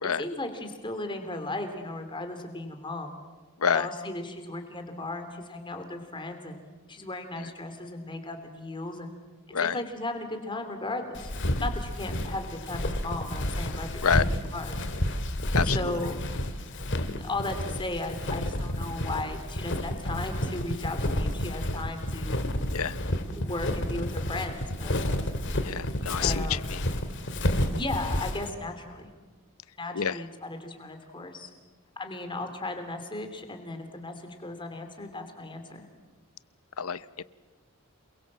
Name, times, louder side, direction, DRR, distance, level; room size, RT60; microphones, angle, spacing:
voice 1, 0.2-3.1 3.7-6.6 6.9-9.1 9.6-11.2 11.6-14.2 14.5-14.8 15.6-16.1 17.0-22.4 23.4-25.0 26.2-26.7 27.8-29.1 29.8-31.5 32.0-35.9, left 2 dB, 20° left, 6 dB, 3.1 m, -36 dB
Walk footsteps, 11.2-28.5, left 1 dB, 55° left, 2.2 m, -30 dB
voice 2, 15.5-15.9 22.7-23.0 25.6-26.8 29.9-30.2 36.8-37.2, left 7 dB, 80° left, 17 dB, 0.8 m, -28 dB
28.0 x 22.5 x 7.6 m, 1.3 s
head